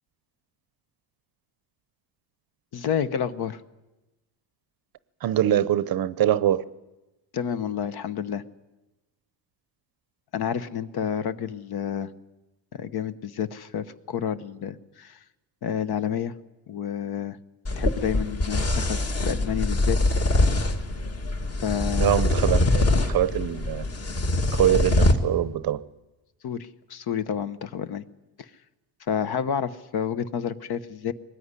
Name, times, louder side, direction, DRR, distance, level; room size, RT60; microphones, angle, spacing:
voice 1, 2.7-3.6 7.3-8.4 10.3-12.1 12.8-15.2 15.6-16.3 16.7-17.4 17.8-20.0 21.6-22.2 26.4-28.0 28.4-28.5 29.1-31.1, left 8 dB, 50° left, 1.1 m, -29 dB
voice 2, 5.2-6.6 22.0-23.9 24.6-25.8, right 11 dB, 45° right, 0.7 m, -23 dB
sound 1, 17.7-25.1, left 2 dB, 30° left, 1.8 m, -23 dB
22.5 x 19.5 x 9.9 m
cardioid pair, 160°, 49 cm